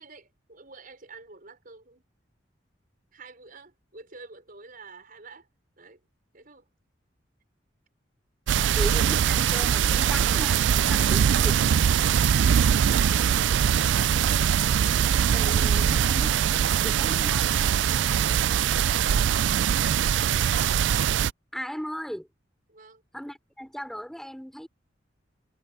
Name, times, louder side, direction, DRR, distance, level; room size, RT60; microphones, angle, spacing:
voice 1, 0.0-2.0 3.1-5.5 5.8-6.1 6.3-6.7 22.7-23.1, right 4 dB, 50° right, 5.8 m, -49 dB
sound 1, 8.5-21.3, right 8 dB, 70° right, 0.3 m, -22 dB
voice 2, 8.7-11.5 15.3-16.3 16.8-17.5 21.5-22.3 23.1-24.7, equal, ahead, 4.5 m, -37 dB
head